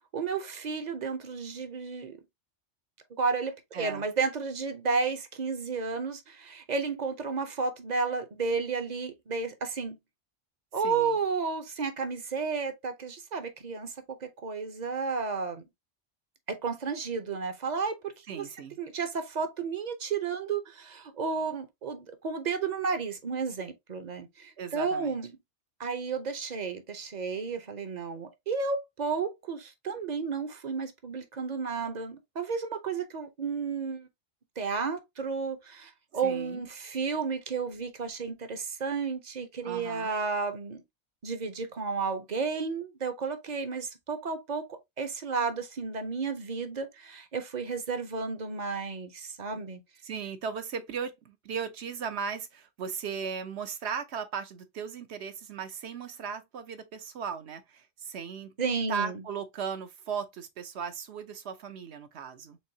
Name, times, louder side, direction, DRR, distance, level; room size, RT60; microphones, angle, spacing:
voice 1, 0.1-2.2 3.2-10.0 10.7-13.9 14.2-15.6 16.5-18.5 18.8-25.3 25.8-34.1 34.6-40.8 41.2-44.7 45.0-49.8 58.6-59.2, right 5 dB, 45° right, 0.8 m, -32 dB
voice 2, 3.7-4.1 10.8-11.2 18.3-18.8 24.6-25.2 36.2-36.6 39.6-40.1 50.0-58.5 58.9-62.6, right 6 dB, 65° right, 1.0 m, -37 dB
4.6 x 3.6 x 2.7 m
omnidirectional pair, 1.2 m